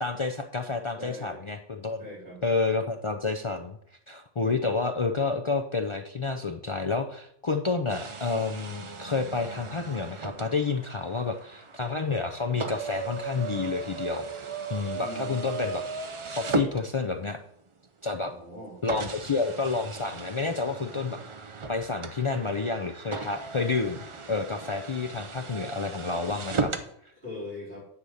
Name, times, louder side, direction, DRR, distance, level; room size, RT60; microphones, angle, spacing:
voice 1, 0.0-2.0 2.4-3.8 4.1-14.3 14.7-15.8 16.3-17.4 18.0-18.3 18.8-21.2 21.7-24.0 24.3-26.7 27.0-27.1, left 4 dB, 55° left, 5 dB, 0.3 m, -29 dB
voice 2, 1.0-1.4 2.0-2.4 14.9-15.6 18.2-18.8 27.2-27.9, left 1 dB, 50° right, -7 dB, 4.3 m, -41 dB
sound 1, 7.9-17.4 18.1-18.2 18.9-26.9, right 4 dB, 35° right, 0.5 m, -36 dB
9.7 x 4.1 x 6.4 m, 0.69 s
omnidirectional pair, 1.3 m